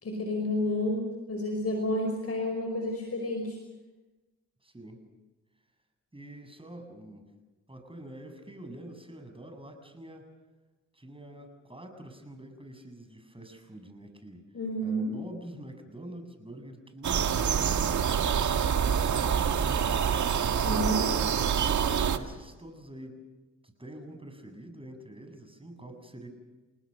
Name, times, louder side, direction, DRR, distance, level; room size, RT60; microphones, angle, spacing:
voice 1, 0.0-3.6 14.5-15.1 20.6-21.1, left 1 dB, 50° left, 2 dB, 5.3 m, -30 dB
voice 2, 4.6-5.1 6.1-7.3 7.7-10.3 10.9-14.4 14.8-18.1 21.6-21.8 22.1-23.2 23.6-26.3, right 1 dB, 15° right, 6 dB, 7.3 m, -46 dB
sound 1, 17.0-22.2, right 7 dB, 70° right, 1.8 m, -26 dB
29.5 x 19.5 x 6.6 m, 1.2 s
supercardioid pair, 55°, 31 cm